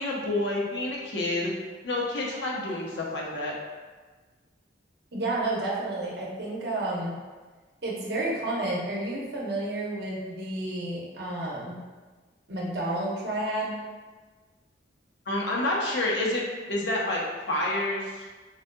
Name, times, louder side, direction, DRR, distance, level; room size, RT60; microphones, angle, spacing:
voice 1, 0.0-1.5 1.8-3.5 15.3-16.4 16.7-17.2 17.5-18.2, left 1 dB, 70° left, -4 dB, 0.7 m, -28 dB
voice 2, 5.1-7.1 7.8-11.8 12.5-13.8, right 2 dB, 60° right, -5 dB, 0.7 m, -30 dB
3.9 x 2.6 x 2.2 m, 1.3 s
head